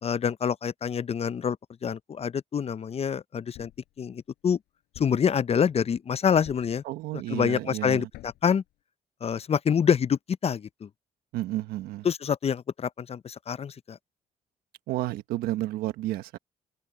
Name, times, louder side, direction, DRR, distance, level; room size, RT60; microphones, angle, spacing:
voice 1, 0.0-1.6 1.8-3.7 4.0-4.6 5.0-6.8 7.3-8.6 9.2-10.9 12.0-14.0, left 7 dB, 40° left, 0.6 m, -26 dB
Thump thud, 3.5-3.9 4.9-5.3 6.4-6.8 8.1-8.5, left 16 dB, 85° left, 7.8 m, -48 dB
voice 2, 6.8-8.1 11.3-12.1 14.9-16.4, right 15 dB, 85° right, 1.3 m, -31 dB
open air
supercardioid pair, 65°, 15 cm